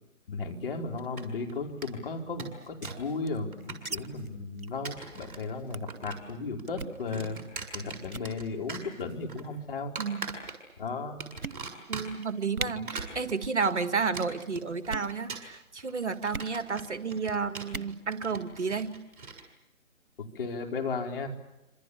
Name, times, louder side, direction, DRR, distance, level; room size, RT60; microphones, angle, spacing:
voice 1, 0.3-7.4 7.7-9.9 10.8-11.2 20.3-21.3, left 4 dB, 40° left, 2 dB, 4.9 m, -35 dB
sound 1, 1.0-1.5 1.8-1.9 2.2-3.1 3.4-4.2 4.7-5.4 5.7-6.3 6.6-8.4 8.7-9.4 10.0-10.8 11.2-12.3 12.7-19.4, right 4 dB, 40° right, 6.8 m, -41 dB
sound 2, 2.6-4.0 4.2-4.3 4.6-4.8 5.1-5.3 5.7-6.0 6.7-7.0 7.6-7.8 8.0-8.3 9.2-9.6 10.3-10.4 10.9-11.0 11.4-12.0 12.2-12.3 12.5-12.7 13.3-13.6 13.9-14.3 14.8-15.1 16.3-16.5 17.6-17.9, right 3 dB, 75° right, 1.4 m, -39 dB
voice 2, 10.0-10.3 11.9-18.9, right 5 dB, 55° right, 11 dB, 2.0 m, -31 dB
27.0 x 27.0 x 7.3 m, 0.93 s
figure-of-eight pair, 145°, 42 cm